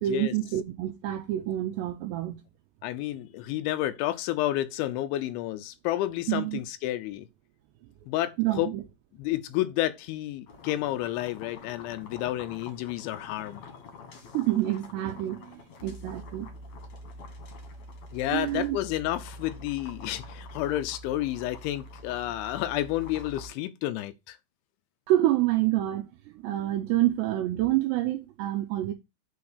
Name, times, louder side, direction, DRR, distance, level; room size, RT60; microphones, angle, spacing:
voice 1, 0.0-2.4 6.3-6.6 8.4-8.8 14.3-16.5 18.3-18.8 25.1-28.9, right 14 dB, 85° right, 2.5 m, -27 dB
voice 2, 2.8-7.3 8.1-8.7 9.2-13.6 18.1-24.4, left 14 dB, 80° left, 2.9 m, -30 dB
sound 1, 10.5-23.5, left 2 dB, 55° left, 2.0 m, -45 dB
8.5 x 4.3 x 6.5 m
omnidirectional pair, 5.7 m